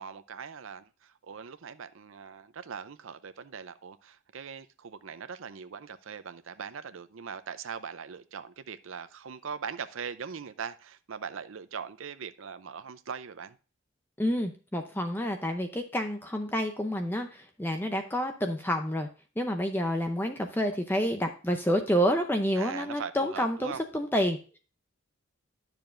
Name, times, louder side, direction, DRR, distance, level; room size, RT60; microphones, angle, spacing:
voice 1, 0.0-13.6 22.6-23.8, right 6 dB, 70° right, 0.6 m, -41 dB
voice 2, 14.2-19.1 19.4-24.4, equal, 10° left, 0.6 m, -29 dB
10.5 x 6.9 x 2.5 m
head